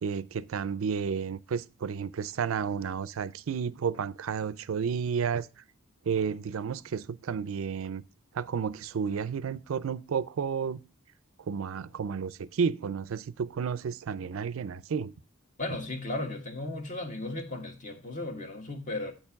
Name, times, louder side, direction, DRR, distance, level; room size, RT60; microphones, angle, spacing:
voice 1, 0.0-5.5 6.1-8.0 8.3-10.8 11.5-15.1, right 6 dB, 85° right, 0.4 m, -31 dB
voice 2, 15.6-19.1, left 2 dB, 40° left, 1.5 m, -35 dB
8.9 x 4.5 x 5.7 m
head